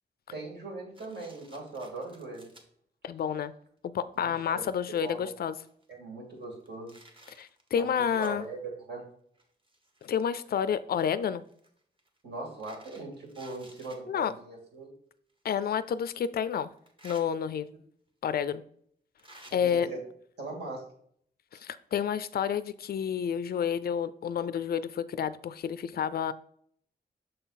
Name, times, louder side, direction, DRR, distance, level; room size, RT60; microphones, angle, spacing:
voice 1, 0.3-2.5 4.1-5.3 5.9-7.0 7.7-9.1 12.2-14.9 19.6-20.0 20.4-20.8, right 2 dB, 70° right, 0 dB, 2.4 m, -40 dB
sound 1, 0.9-2.6 3.3-3.5 4.1-4.2 4.5-5.9 6.4-8.4 9.3-10.5 11.5-14.0 15.3-15.4 16.7-17.2 18.3-18.4 19.2-19.5, right 1 dB, 30° right, 1.2 m, -55 dB
voice 2, 3.0-3.5 3.9-5.6 7.4-8.5 10.0-11.4 14.1-14.3 15.4-16.7 17.0-17.7 18.2-18.6 19.5-19.9 21.5-26.3, left 8 dB, 60° left, 14 dB, 0.4 m, -30 dB
6.5 x 3.9 x 4.1 m, 0.64 s
wide cardioid pair, 120°, 18 cm